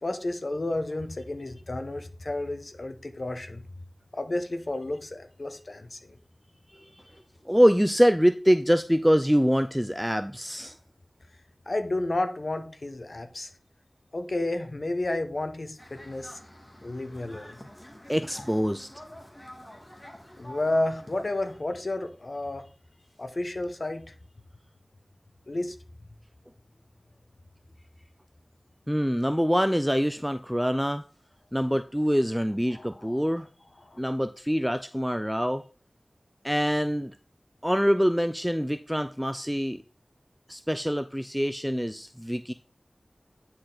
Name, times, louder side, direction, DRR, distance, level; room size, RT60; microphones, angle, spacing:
voice 1, 0.0-3.6 4.1-6.1 11.7-13.5 14.1-16.4 16.8-17.6 20.4-22.7 23.2-24.1 25.5-25.7 32.7-33.2 33.8-34.0, left 2 dB, 60° left, 1.1 m, -31 dB
voice 2, 7.5-10.7 18.1-18.9 28.9-31.0 31.5-33.5 34.0-35.6 36.4-37.1 37.6-39.8 40.5-42.5, equal, ahead, 0.4 m, -24 dB
sound 1, 15.8-21.6, left 1 dB, 30° left, 1.8 m, -47 dB
9.5 x 4.3 x 4.0 m
wide cardioid pair, 60°, 0 cm